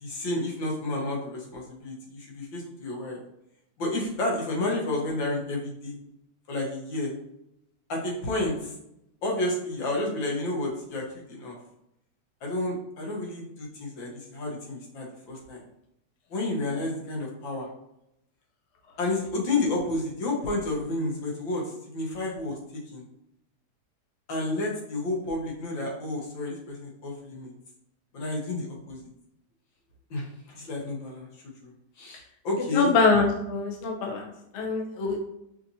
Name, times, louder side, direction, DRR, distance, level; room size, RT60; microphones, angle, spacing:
voice 1, 0.0-3.2 3.8-6.0 6.5-7.1 7.9-8.7 9.2-11.6 12.4-15.6 16.3-17.7 19.0-22.6 22.9-23.0 24.3-27.5 28.1-29.1 30.1-31.3 31.6-32.9, left 2 dB, 85° left, -3 dB, 1.9 m, -31 dB
voice 2, 32.7-35.2, left 4 dB, 60° left, 1 dB, 0.7 m, -24 dB
5.7 x 2.8 x 2.7 m, 0.80 s
omnidirectional pair, 2.0 m